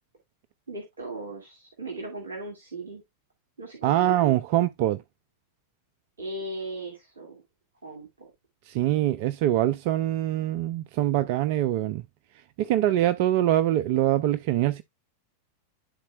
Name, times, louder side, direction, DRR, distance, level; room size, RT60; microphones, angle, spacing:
voice 1, 0.7-3.0 3.6-4.3 6.2-7.4 7.8-8.3, right 2 dB, 70° right, 2.3 m, -37 dB
voice 2, 3.8-5.0 8.7-12.0 12.6-14.8, right 13 dB, 45° right, 0.4 m, -24 dB
11.5 x 4.2 x 2.3 m
figure-of-eight pair, 90°, 0 cm